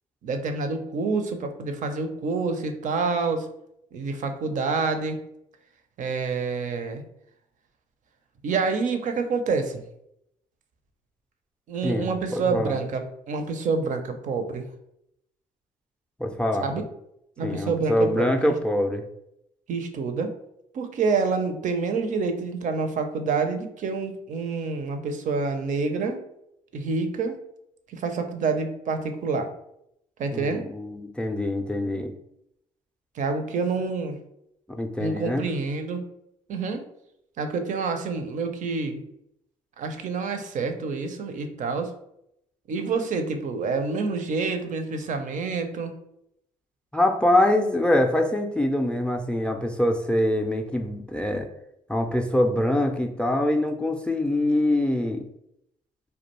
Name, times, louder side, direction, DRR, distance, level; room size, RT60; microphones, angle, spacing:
voice 1, 0.2-3.5 3.9-5.2 6.0-7.0 8.4-9.8 11.7-14.7 16.6-16.8 17.4-18.5 19.7-20.3 20.7-26.2 26.7-27.4 27.9-29.5 30.2-30.7 33.1-34.2 35.0-36.1 36.5-36.8 37.4-39.0 39.8-41.9 42.7-46.0, right 4 dB, 55° right, 7 dB, 0.5 m, -27 dB
voice 2, 11.8-12.7 16.2-16.8 17.4-19.0 30.3-32.1 34.7-35.4 46.9-51.5 51.9-55.3, left 1 dB, 5° left, 6 dB, 0.3 m, -24 dB
2.3 x 2.2 x 2.9 m, 0.78 s
hypercardioid pair, 55°, 16 cm